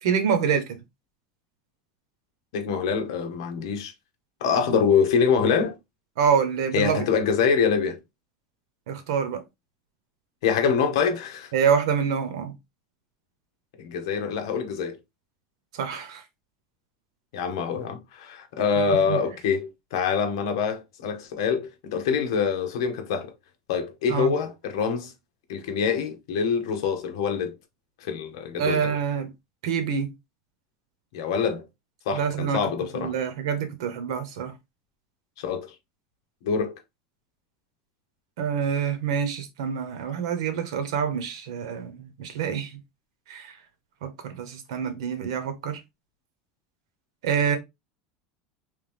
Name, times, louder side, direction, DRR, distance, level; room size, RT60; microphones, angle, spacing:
voice 1, 0.0-0.8 6.2-7.0 8.9-9.4 11.5-12.5 15.7-16.2 18.9-19.2 24.1-24.3 28.6-29.3 29.6-30.1 32.1-32.6 32.9-34.5 38.4-42.8 43.3-43.5 44.0-45.8 47.2-47.6, right 7 dB, 85° right, 1.1 m, -26 dB
voice 2, 2.5-3.9 4.4-5.8 6.7-8.0 10.4-11.5 13.8-15.0 17.3-23.3 23.7-25.1 25.5-27.6 28.0-28.9 31.1-31.6 32.1-33.1 35.4-35.7 36.4-36.8, left 6 dB, 75° left, 1.0 m, -25 dB
3.5 x 3.0 x 3.5 m
supercardioid pair, 180°, 3 cm